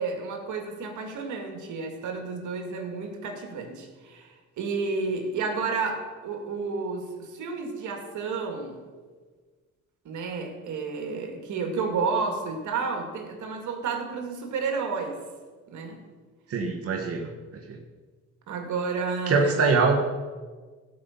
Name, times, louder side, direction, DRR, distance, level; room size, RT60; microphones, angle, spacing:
voice 1, 0.0-8.8 10.0-15.2 15.7-16.0 18.5-19.6, right 4 dB, 75° right, 3 dB, 2.2 m, -31 dB
voice 2, 16.5-17.3 17.7-17.8 19.3-20.0, right 4 dB, 50° right, 1 dB, 1.5 m, -23 dB
15.5 x 5.5 x 7.2 m, 1.4 s
cardioid pair, 90°, 30 cm